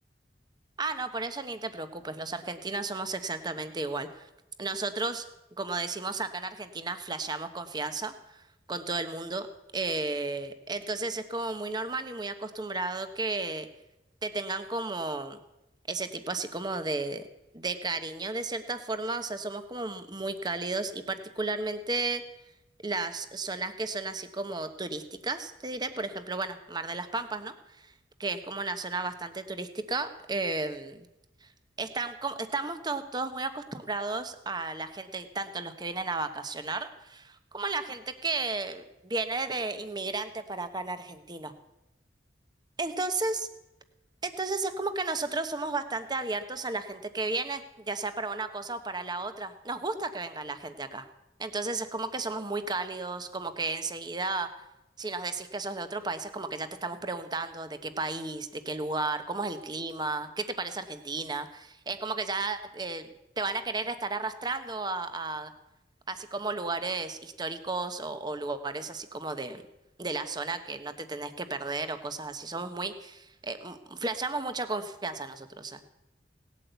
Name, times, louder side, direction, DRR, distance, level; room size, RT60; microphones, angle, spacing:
voice 1, 0.8-4.3 4.6-5.2 5.6-8.4 8.7-9.5 9.7-13.7 14.2-15.4 15.9-17.3 17.5-22.2 22.8-27.9 28.2-31.1 31.4-31.5 31.8-41.5 42.8-43.5 44.2-51.1 51.4-54.5 55.0-63.1 63.4-65.5 66.1-69.6 70.0-75.8, right 3 dB, 25° right, 10 dB, 1.0 m, -33 dB
18.0 x 8.4 x 8.1 m, 0.92 s
head